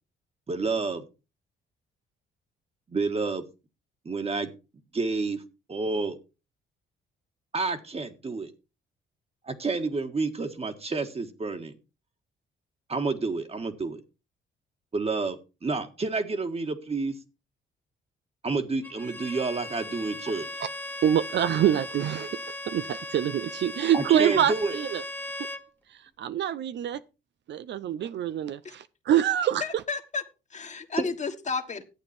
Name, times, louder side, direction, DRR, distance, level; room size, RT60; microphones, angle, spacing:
voice 1, 0.5-1.1 2.9-3.4 4.0-4.5 4.9-5.4 5.7-6.2 7.5-8.5 9.4-11.7 12.9-14.0 14.9-17.2 18.4-20.5 23.9-24.8 31.0-31.1, right 3 dB, 30° right, 1.7 m, -29 dB
Bowed string instrument, 18.8-25.7, left 1 dB, 10° left, 1.3 m, -38 dB
voice 2, 21.0-22.4 22.7-25.0 26.2-27.0 27.5-29.6, right 10 dB, 65° right, 0.6 m, -25 dB
voice 3, 29.6-30.2 30.5-31.9, left 4 dB, 35° left, 1.7 m, -32 dB
11.5 x 8.4 x 4.4 m
cardioid pair, 90°, 20 cm